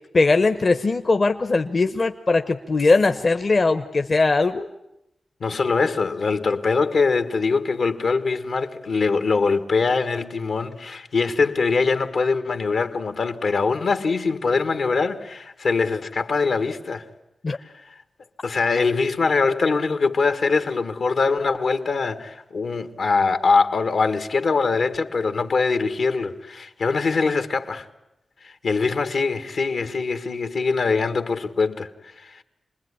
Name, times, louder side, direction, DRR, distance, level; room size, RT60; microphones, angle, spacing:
voice 1, 0.1-4.7 17.4-17.6, left 3 dB, 50° left, 1.0 m, -20 dB
voice 2, 5.4-17.0 18.4-27.9 28.4-31.9 32.2-32.4, left 4 dB, 75° left, 1.7 m, -23 dB
27.5 x 21.0 x 10.0 m
cardioid pair, 75°, 0 cm